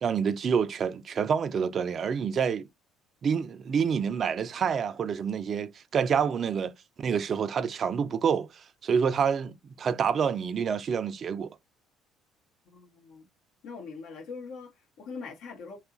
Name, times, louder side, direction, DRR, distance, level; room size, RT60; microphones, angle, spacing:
voice 1, 0.0-2.7 3.2-6.7 7.0-11.5, right 7 dB, 45° right, 0.4 m, -27 dB
voice 2, 12.7-13.3 13.6-15.8, left 4 dB, 70° left, 0.8 m, -42 dB
2.8 x 2.4 x 2.4 m
supercardioid pair, 75°, 0 cm